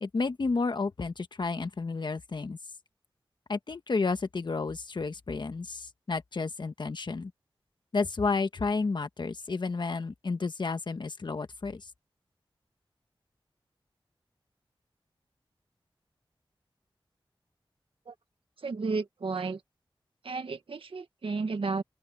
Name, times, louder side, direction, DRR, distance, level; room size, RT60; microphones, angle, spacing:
voice 1, 0.0-2.6 3.5-7.3 7.9-11.8, left 4 dB, 60° left, 1.3 m, -31 dB
voice 2, 18.6-19.6 20.2-21.8, right 4 dB, 80° right, 1.7 m, -32 dB
open air
wide cardioid pair, 95°, 9 cm